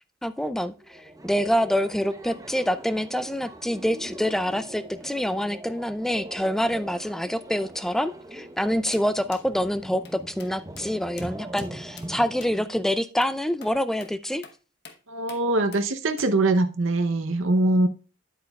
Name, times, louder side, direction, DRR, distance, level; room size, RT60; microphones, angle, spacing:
voice 1, 0.2-14.4, equal, ahead, 0.3 m, -26 dB
sound 1, 0.7-12.7, right 1 dB, 20° right, 0.8 m, -42 dB
sound 2, 8.9-9.1 9.3-9.4 10.0-10.1 10.4-10.5 10.8-10.9 11.2-11.3 11.6-11.7 12.0-12.1 12.4-12.5 13.2-13.3 13.6-13.7 14.0-14.1 14.4-14.6 14.8-15.0 15.3-15.4 15.7-15.9 16.2-16.3, left 6 dB, 60° left, 1.0 m, -45 dB
voice 2, 15.1-17.9, right 2 dB, 80° right, 0.7 m, -22 dB
9.7 x 8.3 x 2.3 m
head